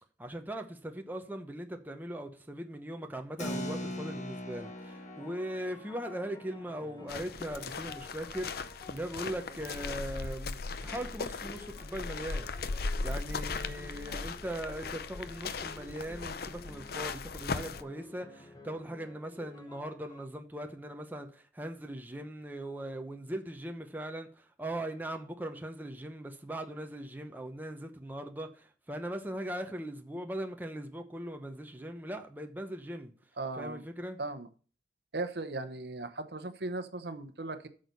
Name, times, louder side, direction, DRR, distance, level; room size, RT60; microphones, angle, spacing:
voice 1, 0.2-12.5 13.0-33.1 33.6-34.2, right 1 dB, 10° right, 0.9 m, -40 dB
Keyboard (musical), 3.4-9.4, left 1 dB, 40° left, 1.6 m, -43 dB
sound 1, 4.6-10.2 10.8-17.1 17.4-20.3, left 2 dB, 20° left, 1.0 m, -53 dB
sound 2, 7.1-17.8, left 4 dB, 60° left, 0.6 m, -38 dB
voice 2, 33.4-33.8 34.2-34.5 35.1-37.7, right 2 dB, 65° right, 1.0 m, -37 dB
8.7 x 6.5 x 5.3 m
head